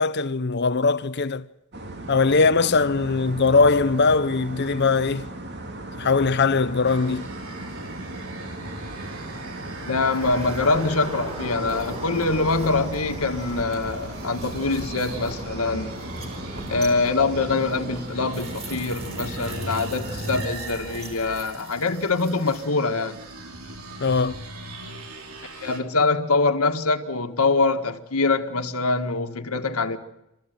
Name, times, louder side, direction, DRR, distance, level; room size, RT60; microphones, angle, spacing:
voice 1, 0.0-1.4 2.1-5.2 6.0-7.3 24.0-24.4, left 4 dB, 50° left, 0.7 m, -20 dB
sound 1, 1.7-20.5, right 1 dB, 50° right, 2.7 m, -36 dB
sound 2, 6.8-25.8, right 3 dB, 75° right, 3.5 m, -42 dB
voice 2, 9.9-16.0 16.7-23.2 25.6-30.0, left 3 dB, 75° left, 1.7 m, -24 dB
sound 3, 10.1-22.7, right 1 dB, 30° right, 4.2 m, -39 dB
28.5 x 14.5 x 9.2 m
head